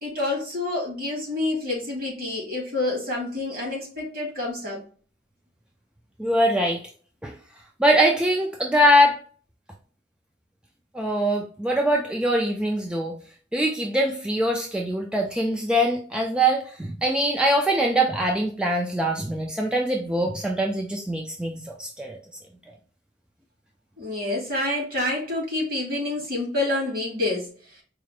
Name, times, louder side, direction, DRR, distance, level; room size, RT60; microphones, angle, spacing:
voice 1, 0.0-4.8 24.0-27.8, left 2 dB, 55° right, -2 dB, 1.9 m, -28 dB
voice 2, 6.2-6.8 7.2-7.3 7.8-9.2 10.9-13.1 13.5-22.2, equal, 5° right, 0 dB, 0.3 m, -23 dB
4.7 x 2.1 x 3.1 m, 0.43 s
head